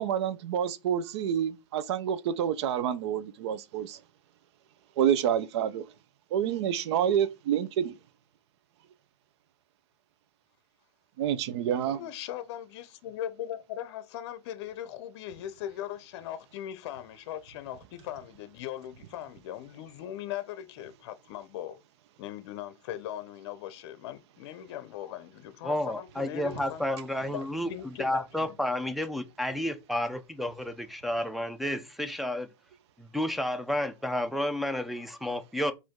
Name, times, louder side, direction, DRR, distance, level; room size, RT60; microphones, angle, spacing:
voice 1, 0.0-4.0 5.0-5.8 6.3-7.9 11.2-12.0, right 9 dB, 70° right, 0.6 m, -28 dB
voice 2, 11.9-21.8 22.2-26.8 27.3-28.6, left 11 dB, 60° left, 0.6 m, -39 dB
voice 3, 25.6-27.7 28.0-32.5 33.0-35.7, left 1 dB, ahead, 0.4 m, -31 dB
5.0 x 2.6 x 3.6 m
hypercardioid pair, 120°, 15 cm